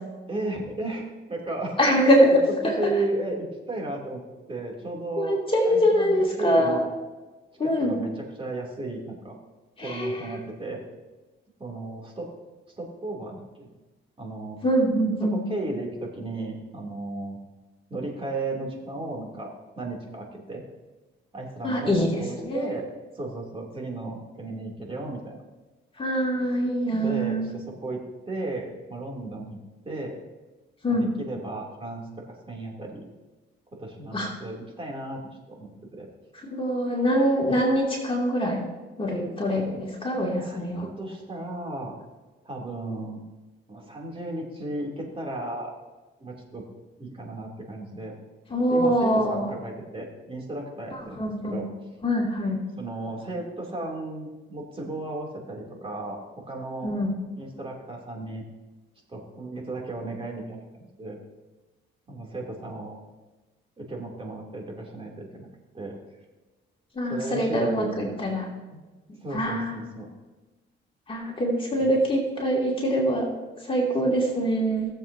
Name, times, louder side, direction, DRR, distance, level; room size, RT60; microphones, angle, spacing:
voice 1, 0.3-1.0 1.3-1.8 2.3-5.4 5.6-6.9 7.6-9.4 9.8-10.8 11.6-12.3 12.8-13.7 14.2-14.6 15.2-17.4 17.9-20.6 21.3-22.9 23.1-25.4 26.9-28.0 28.3-29.6 29.8-30.2 30.9-33.1 33.8-35.2 35.5-36.1 40.4-41.9 42.4-43.2 43.7-45.7 46.2-46.6 47.0-48.1 48.7-51.7 52.8-56.2 56.5-56.9 57.4-58.4 59.1-61.2 62.1-63.0 63.8-65.5 65.7-65.9 67.1-68.3 68.7-68.8 69.2-70.1 71.8-71.9 74.0-74.3, right 2 dB, 25° right, -1 dB, 3.0 m, -34 dB
voice 2, 1.8-2.4 5.2-6.8 7.6-8.0 9.8-10.2 14.6-15.4 21.6-22.1 22.4-22.7 26.0-27.5 30.8-31.1 34.1-34.3 36.5-38.6 39.0-40.9 48.5-49.5 51.2-51.6 52.0-52.6 56.8-57.1 67.0-68.5 69.3-69.9 71.1-73.3 73.6-74.9, equal, 25° left, -3 dB, 2.7 m, -24 dB
18.0 x 7.5 x 2.8 m, 1.2 s
cardioid pair, 90°, 20 cm